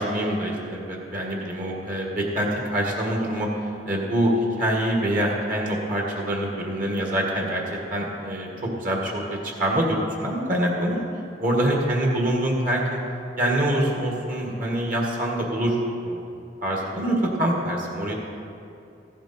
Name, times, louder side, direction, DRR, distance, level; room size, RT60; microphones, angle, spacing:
voice 1, 0.0-3.5 3.9-11.0 11.4-13.0 13.4-15.8 16.0-16.2 16.6-18.1, right 1 dB, 50° right, -1 dB, 1.8 m, -25 dB
14.5 x 10.5 x 4.3 m, 2.6 s
head